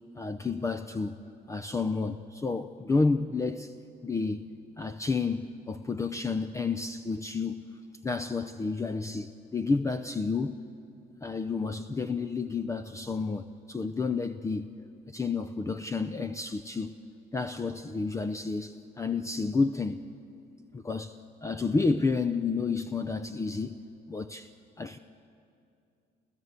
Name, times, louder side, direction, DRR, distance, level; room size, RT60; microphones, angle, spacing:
voice 1, 0.2-1.1 1.5-3.7 4.0-4.5 4.8-7.7 8.0-10.6 11.2-14.7 15.1-17.0 17.3-20.1 20.7-21.2 21.4-23.8 24.1-24.5 24.8-25.0, left 4 dB, 20° left, 0.5 m, -30 dB
29.5 x 14.5 x 8.1 m
cardioid pair, 110°, 17 cm